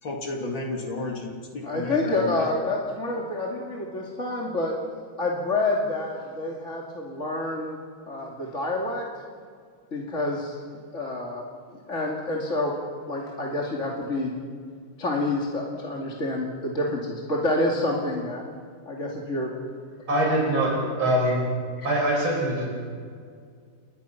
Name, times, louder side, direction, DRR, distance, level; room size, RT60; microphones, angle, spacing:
voice 1, 0.0-2.5, left 2 dB, 70° left, 0 dB, 3.5 m, -32 dB
voice 2, 1.6-4.7 5.2-7.8 8.1-9.0 9.9-10.6 10.9-11.4 11.7-12.7 13.1-14.4 15.0-18.4 18.9-19.6 21.2-21.3 21.8-21.9, left 2 dB, 35° left, -2 dB, 2.9 m, -28 dB
voice 3, 20.1-21.4 21.8-22.7, right 1 dB, 85° right, -1 dB, 6.7 m, -23 dB
30.0 x 22.5 x 5.9 m, 2.1 s
omnidirectional pair, 2.2 m